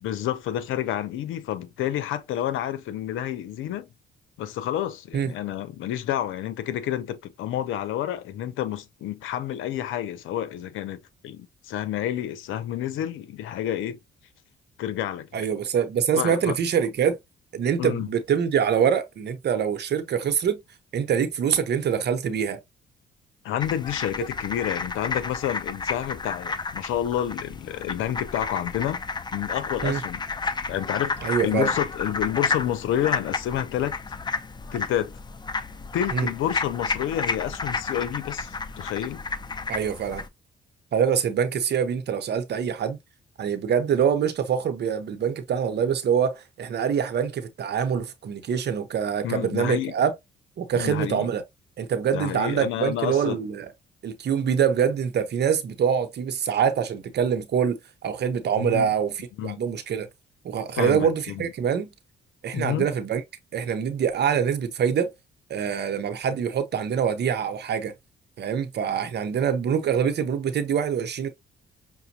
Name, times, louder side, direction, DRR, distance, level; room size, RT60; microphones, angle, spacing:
voice 1, 0.0-3.9 4.4-14.0 14.8-15.5 16.2-16.5 17.8-18.1 23.4-29.0 29.3-30.2 30.7-34.0 34.7-35.1 35.9-39.2 49.2-49.9 50.7-51.3 52.1-53.4 58.6-58.9 59.4-59.6 60.8-61.5 62.5-62.9, left 11 dB, 85° left, 0.6 m, -29 dB
voice 2, 15.3-17.2 17.5-20.6 20.9-22.6 29.8-30.0 31.2-31.7 36.1-36.3 39.7-40.3 40.9-43.0 43.4-50.1 50.6-51.4 51.8-53.7 54.0-60.1 60.4-61.9 62.4-63.2 63.5-65.1 65.5-67.9 68.4-71.3, right 7 dB, 60° right, 0.8 m, -25 dB
sound 1, 23.6-40.3, left 4 dB, 20° left, 0.5 m, -31 dB
5.9 x 2.1 x 2.8 m
cardioid pair, 90°, 20 cm